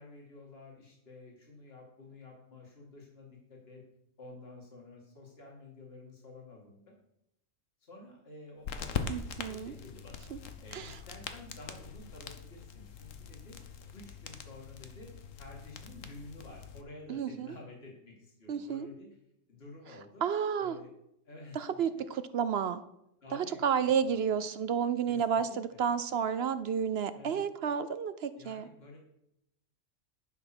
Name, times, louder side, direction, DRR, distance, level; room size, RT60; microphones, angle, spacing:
voice 1, 0.0-3.8 4.2-6.9 7.8-10.3 10.6-13.6 13.9-19.1 19.5-20.2 20.6-20.9 21.3-21.6 22.0-22.1 23.2-23.6 24.0-24.2 25.1-25.8 27.1-27.4 28.4-29.0, left 2 dB, 50° left, -1 dB, 2.7 m, -51 dB
sound 1, 8.6-16.8, left 6 dB, 90° left, 1.3 m, -42 dB
voice 2, 9.1-9.7 10.3-10.4 10.7-11.0 17.1-17.6 18.5-18.9 20.2-20.8 21.5-22.8 23.3-28.7, right 7 dB, 65° right, 13 dB, 0.8 m, -31 dB
11.0 x 6.0 x 6.1 m, 0.80 s
omnidirectional pair, 1.3 m